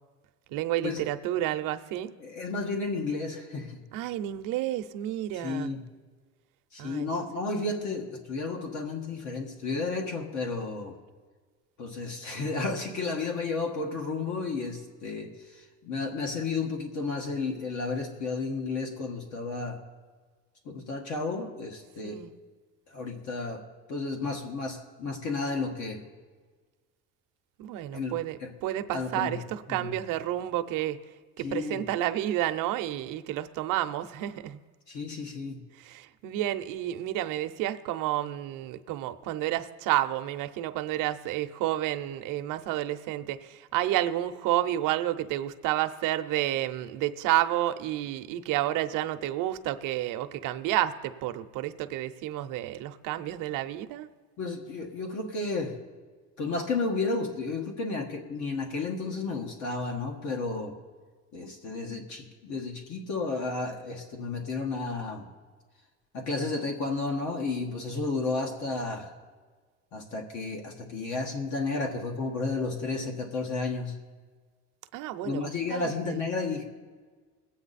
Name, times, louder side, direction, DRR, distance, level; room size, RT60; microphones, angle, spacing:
voice 1, 0.5-2.1 3.9-5.7 6.8-7.1 22.0-22.3 27.6-31.0 31.4-34.6 35.8-54.1 74.9-76.2, right 13 dB, 70° right, 9 dB, 0.8 m, -30 dB
voice 2, 2.2-3.8 5.3-5.8 6.7-11.0 11.8-19.8 20.7-22.2 22.9-26.0 27.9-28.5 28.9-29.4 29.7-29.9 31.4-31.8 34.9-35.6 54.4-55.8 56.4-60.8 61.3-65.3 66.1-69.1 69.9-74.0 75.2-76.7, left 3 dB, 60° left, 2 dB, 1.6 m, -32 dB
21.0 x 8.6 x 4.1 m, 1.5 s
cardioid pair, 155°, 33 cm